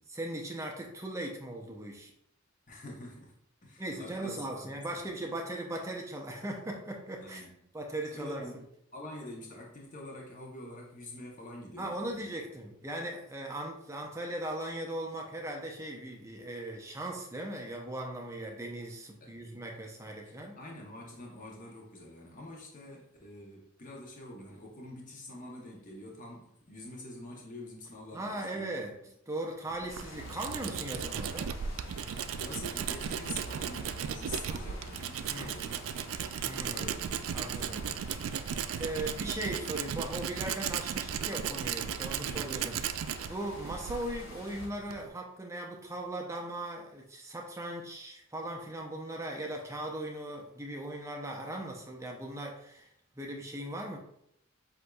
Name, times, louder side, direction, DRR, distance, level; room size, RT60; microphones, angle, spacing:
voice 1, 0.1-2.1 3.8-7.4 7.7-8.4 11.8-20.6 28.1-28.9 29.3-31.5 35.3-35.5 36.4-36.9 37.3-37.8 38.8-52.9 53.2-54.0, right 1 dB, 15° right, 1 dB, 0.5 m, -38 dB
voice 2, 2.7-5.1 7.2-7.5 8.1-8.6 8.9-12.3 19.2-19.3 20.6-28.7 32.3-36.0 36.7-38.0 42.3-42.5, left 1 dB, 40° left, -2 dB, 0.8 m, -46 dB
Tools, 29.7-45.1, right 8 dB, 85° right, 0.3 m, -36 dB
sound 1, 29.9-44.7, left 2 dB, 80° left, 1.0 m, -49 dB
7.8 x 2.6 x 2.3 m, 0.73 s
head